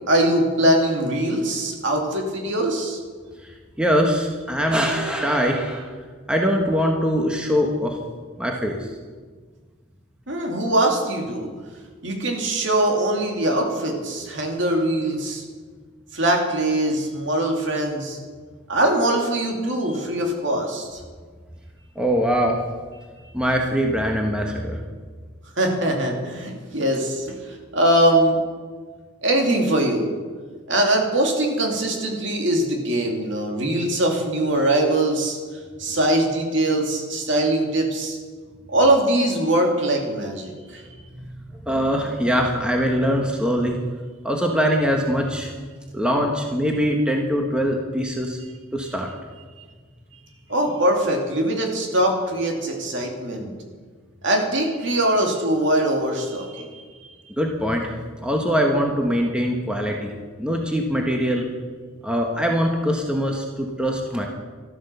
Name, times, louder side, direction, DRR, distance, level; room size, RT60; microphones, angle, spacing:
voice 1, 0.1-3.0 10.3-11.5 12.0-15.4 16.1-18.2 18.7-21.0 25.6-28.4 29.2-30.1 30.7-35.4 35.8-38.2 38.7-40.8 50.5-53.5 54.2-56.7, right 1 dB, 60° right, 2 dB, 2.6 m, -22 dB
voice 2, 3.8-5.9 6.3-8.0 8.4-8.8 22.0-22.6 23.3-24.8 41.1-41.3 41.7-43.8 44.2-45.5 45.9-48.4 48.7-49.1 57.4-61.4 62.0-64.3, equal, 5° right, 1 dB, 1.2 m, -22 dB
13.0 x 12.5 x 6.8 m, 1.5 s
head